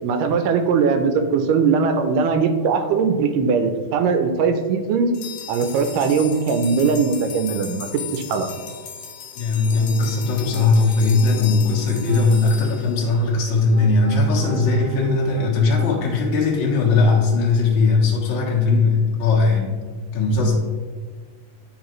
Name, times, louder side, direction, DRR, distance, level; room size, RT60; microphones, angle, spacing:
voice 1, 0.0-5.1 5.5-8.5, right 5 dB, 85° right, 7 dB, 2.2 m, -20 dB
sound 1, 5.1-13.7, left 8 dB, 75° left, 2.1 m, -37 dB
voice 2, 9.3-19.8 20.1-20.5, left 3 dB, 55° left, -3 dB, 1.4 m, -19 dB
Piano, 9.6-10.7 11.1-12.2 12.9-16.1, equal, 15° left, 0.7 m, -36 dB
10.0 x 3.9 x 3.1 m, 1.5 s
omnidirectional pair, 3.8 m